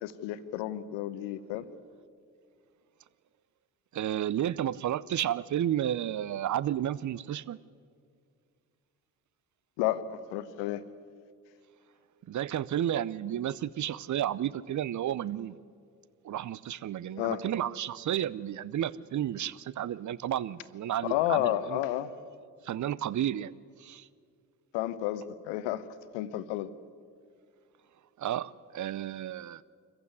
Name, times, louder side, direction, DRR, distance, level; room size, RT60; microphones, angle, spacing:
voice 1, 0.0-1.7 9.8-10.8 17.2-17.4 21.0-22.3 24.7-25.8 26.1-26.7, left 13 dB, 70° left, 1.1 m, -31 dB
voice 2, 3.9-7.6 12.3-15.6 16.2-21.8 22.6-23.5 23.8-24.1 28.2-29.6, right 11 dB, 40° right, 0.7 m, -32 dB
24.5 x 15.0 x 9.5 m
hypercardioid pair, 45°, 45 cm